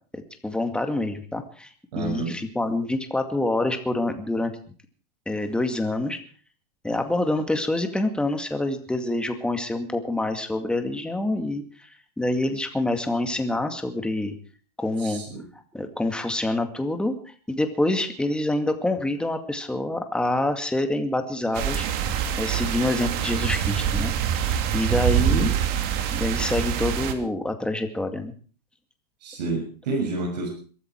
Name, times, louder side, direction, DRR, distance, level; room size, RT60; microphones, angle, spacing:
voice 1, 0.4-1.7 2.0-4.5 5.3-6.2 6.8-11.9 12.2-14.3 14.8-15.2 15.7-17.1 17.5-21.8 22.4-25.5 26.1-28.3, left 2 dB, 5° left, 6 dB, 2.2 m, -26 dB
voice 2, 1.9-2.3 15.0-15.5 25.2-25.6 29.2-30.5, right 3 dB, 80° right, -2 dB, 6.7 m, -29 dB
sound 1, 21.5-27.1, right 9 dB, 45° right, 2.5 m, -25 dB
22.0 x 13.5 x 4.7 m, 0.42 s
supercardioid pair, 135°, 21 cm